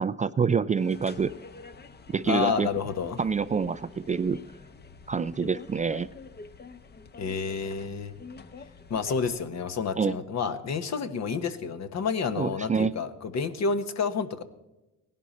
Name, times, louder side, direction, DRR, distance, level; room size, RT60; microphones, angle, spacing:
voice 1, 0.0-1.3 2.1-2.7 3.2-4.4 5.1-6.1 10.0-10.1 12.4-12.9, right 5 dB, 25° right, 13 dB, 0.4 m, -26 dB
sound 1, 0.7-9.6, left 4 dB, 30° left, 0.9 m, -48 dB
voice 2, 2.3-3.2 7.2-8.1 8.9-14.4, left 5 dB, 55° left, 9 dB, 1.3 m, -29 dB
17.0 x 11.0 x 4.2 m, 0.98 s
cardioid pair, 100°, 32 cm